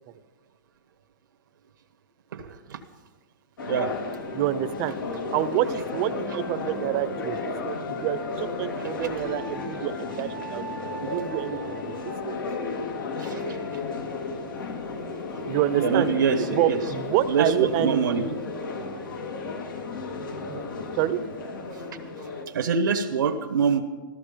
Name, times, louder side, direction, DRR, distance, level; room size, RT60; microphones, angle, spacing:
voice 1, 2.3-2.8 3.7-3.9 10.8-10.9 13.2-13.4 15.8-16.8 17.3-18.2 22.5-23.8, right 6 dB, 90° right, 4 dB, 1.3 m, -25 dB
sound 1, 3.6-22.4, left 3 dB, 75° left, 2.2 m, -33 dB
voice 2, 4.3-4.9 5.3-10.6 11.0-12.4 15.5-16.1 16.5-18.4 20.5-20.6 20.9-21.2, right 12 dB, 40° right, 14 dB, 0.8 m, -27 dB
14.5 x 14.0 x 5.2 m, 1.4 s
hypercardioid pair, 130°, 11 cm